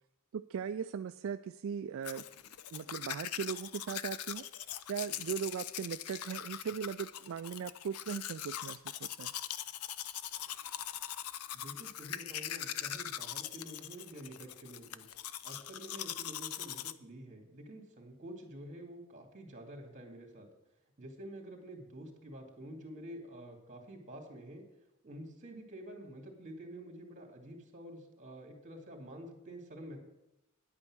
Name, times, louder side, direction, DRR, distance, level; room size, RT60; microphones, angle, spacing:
voice 1, 0.3-2.2 2.7-4.4 4.9-9.3, right 7 dB, 65° right, 10 dB, 0.3 m, -39 dB
Domestic sounds home sounds, 2.0-16.9, left 11 dB, 85° left, 0.5 m, -41 dB
voice 2, 11.5-15.1 15.4-20.5 21.0-24.6 25.0-30.0, right 1 dB, 35° right, 3 dB, 2.4 m, -48 dB
10.5 x 8.7 x 6.2 m, 0.92 s
head